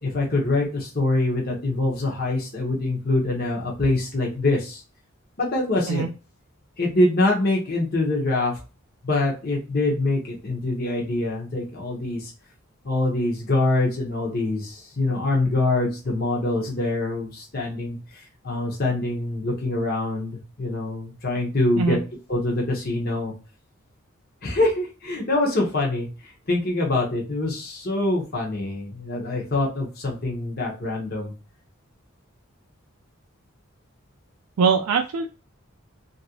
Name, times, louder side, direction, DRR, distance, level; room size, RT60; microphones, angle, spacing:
voice 1, 0.0-4.8 5.4-6.0 6.8-8.6 9.0-12.3 12.8-18.0 18.4-22.0 22.3-23.3 24.4-26.1 26.5-31.3, left 2 dB, 45° left, -2 dB, 0.9 m, -24 dB
voice 2, 34.6-35.3, right 5 dB, 90° right, 4 dB, 0.4 m, -21 dB
2.9 x 2.6 x 2.9 m, 0.32 s
head